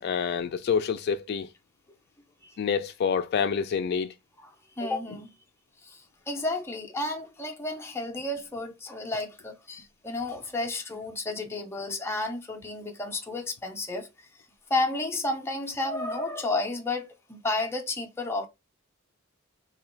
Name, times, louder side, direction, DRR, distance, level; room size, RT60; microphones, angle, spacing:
voice 1, 0.0-1.5 2.6-4.1, left 6 dB, 55° left, 0.3 m, -27 dB
voice 2, 4.4-5.3 5.8-14.1 14.7-18.5, left 2 dB, 10° left, 0.6 m, -32 dB
3.0 x 2.4 x 4.3 m
head